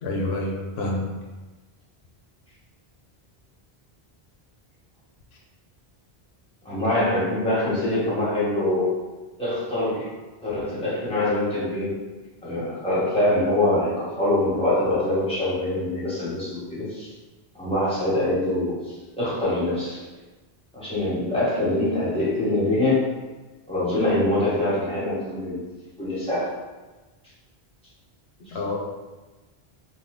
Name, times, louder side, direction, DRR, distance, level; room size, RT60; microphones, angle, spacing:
voice 1, 0.0-1.1 28.5-28.8, left 2 dB, 80° left, 0 dB, 0.9 m, -27 dB
voice 2, 6.6-9.0 9.4-10.1 10.4-12.0 12.4-17.1 17.5-20.0 20.7-23.1 23.7-25.6 26.0-26.5 28.5-28.6, left 1 dB, 5° left, -10 dB, 1.2 m, -24 dB
2.9 x 2.2 x 3.6 m, 1.2 s
omnidirectional pair, 1.0 m